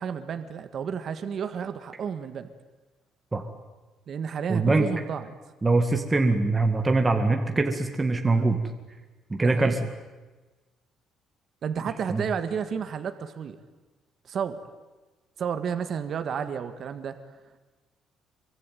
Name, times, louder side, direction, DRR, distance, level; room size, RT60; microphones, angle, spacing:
voice 1, 0.0-2.5 4.1-5.3 9.4-9.8 11.6-13.6 14.2-14.6 15.4-17.2, right 7 dB, 45° right, 9 dB, 1.7 m, -31 dB
voice 2, 4.5-4.9 5.6-8.6 9.3-9.8 12.1-12.2, right 3 dB, 15° right, 4 dB, 2.1 m, -23 dB
26.0 x 24.0 x 9.4 m, 1.2 s
cardioid pair, 155°, 0 cm